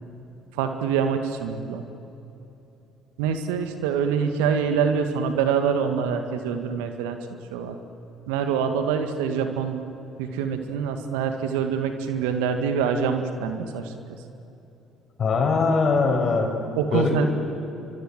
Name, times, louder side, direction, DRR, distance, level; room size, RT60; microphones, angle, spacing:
voice 1, 0.5-1.8 3.2-7.8 8.3-9.8 10.2-13.9 16.8-17.2, right 6 dB, 75° right, 7 dB, 1.9 m, -25 dB
voice 2, 15.2-16.5 16.9-17.1, left 4 dB, 45° left, 3 dB, 6.2 m, -21 dB
29.5 x 24.5 x 7.8 m, 2.9 s
hypercardioid pair, 55°, 0 cm